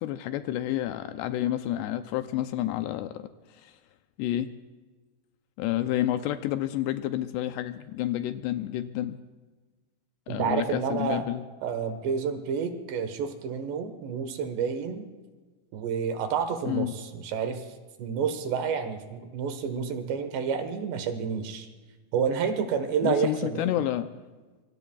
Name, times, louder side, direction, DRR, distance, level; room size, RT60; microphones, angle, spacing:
voice 1, 0.0-3.3 3.6-3.7 4.2-4.5 5.6-9.2 10.3-11.4 16.7-17.0 23.0-24.1, left 13 dB, 80° left, 9 dB, 2.5 m, -29 dB
voice 2, 10.3-11.2 11.6-15.0 15.7-17.6 18.0-21.7 22.1-23.7, right 6 dB, 75° right, 8 dB, 3.5 m, -29 dB
25.5 x 24.0 x 2.3 m, 1.3 s
omnidirectional pair, 5.1 m